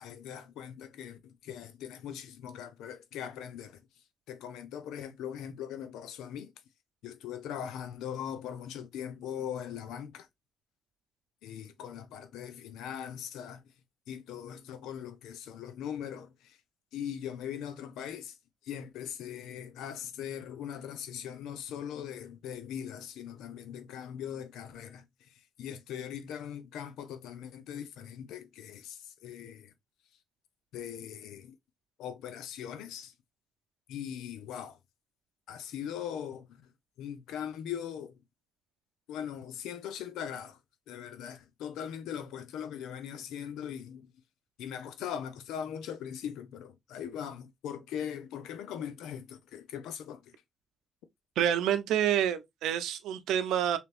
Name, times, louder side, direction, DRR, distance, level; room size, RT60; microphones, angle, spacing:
voice 1, 0.0-3.8 4.3-6.5 7.0-10.3 11.4-13.7 14.1-16.6 16.9-18.4 18.6-29.7 30.7-31.6 32.0-33.1 33.9-34.8 35.5-36.7 37.0-38.2 39.1-40.6 40.9-44.1 44.6-50.3, left 9 dB, 90° left, 0.6 m, -40 dB
voice 2, 51.4-53.8, right 10 dB, 85° right, 0.6 m, -28 dB
3.4 x 2.9 x 3.4 m
cardioid pair, 90°, 0 cm